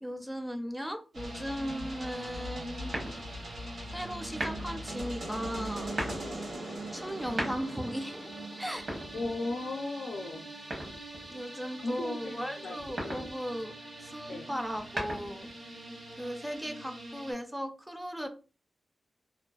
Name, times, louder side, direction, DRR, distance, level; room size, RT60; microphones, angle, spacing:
voice 1, 0.0-3.3 3.9-5.9 6.9-8.3 8.6-8.9 11.3-13.7 14.0-15.5 16.2-18.3, equal, 5° right, 5 dB, 0.3 m, -37 dB
sound 1, 1.1-17.3, right 1 dB, 80° right, 1.2 m, -42 dB
sound 2, 2.9-3.5 4.3-4.8 5.8-6.3 7.1-7.9 8.7-9.7 10.7-11.3 12.8-13.3 14.6-15.5, right 1 dB, 65° right, 0.9 m, -37 dB
voice 2, 9.1-10.4 11.8-12.4 12.6-12.8 13.0-13.2 14.3-14.5, left 2 dB, 75° left, 6 dB, 0.4 m, -36 dB
2.4 x 2.2 x 2.3 m, 0.34 s
wide cardioid pair, 120°, 0 cm